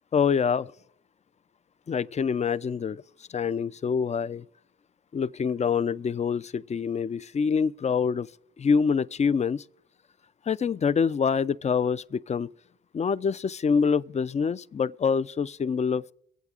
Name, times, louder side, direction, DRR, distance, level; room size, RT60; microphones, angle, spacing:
voice 1, 0.1-0.7 1.9-3.0 3.3-4.4 5.1-8.3 8.6-9.6 10.5-12.5 12.9-16.1, left 6 dB, 25° left, 0.3 m, -26 dB
23.5 x 8.0 x 2.4 m
supercardioid pair, 55°, 31 cm